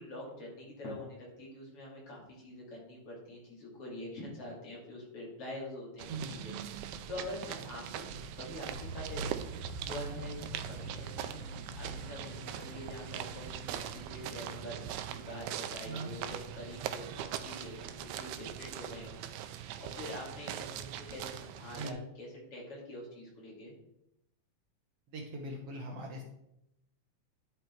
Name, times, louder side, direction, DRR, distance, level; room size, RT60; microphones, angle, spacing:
voice 1, 0.0-6.5 6.8-8.0 8.3-9.3 9.9-14.8 15.1-19.2 19.5-23.7, left 1 dB, 50° left, -4 dB, 3.4 m, -45 dB
sound 1, 6.0-21.9, right 10 dB, 85° right, 2.0 m, -41 dB
sound 2, 8.7-14.4, equal, 85° left, 0.6 m, -45 dB
voice 2, 25.1-26.2, right 2 dB, 65° right, 1 dB, 1.8 m, -40 dB
10.5 x 5.3 x 4.4 m, 0.83 s
omnidirectional pair, 3.4 m